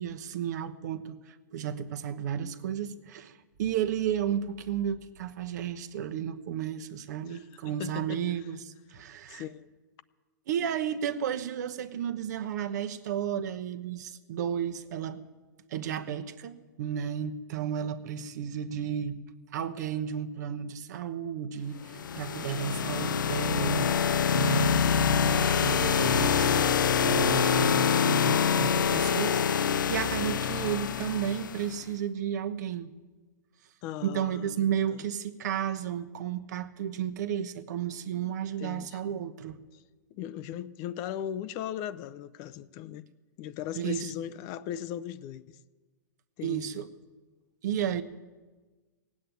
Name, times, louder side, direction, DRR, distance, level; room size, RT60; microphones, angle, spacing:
voice 1, 0.0-9.4 10.5-15.2 15.7-19.2 19.5-26.7 27.0-32.9 34.0-39.6 43.7-44.1 46.4-46.9 47.6-48.0, right 9 dB, 65° right, 1.0 m, -33 dB
voice 2, 7.3-8.2 9.3-9.7 33.8-35.1 38.1-38.3 38.6-39.2 40.1-43.1 43.4-45.6 46.4-46.8, left 10 dB, 35° left, 0.6 m, -38 dB
sound 1, 21.9-31.7, left 7 dB, 85° left, 0.6 m, -25 dB
17.0 x 8.6 x 9.2 m
hypercardioid pair, 135°, 10 cm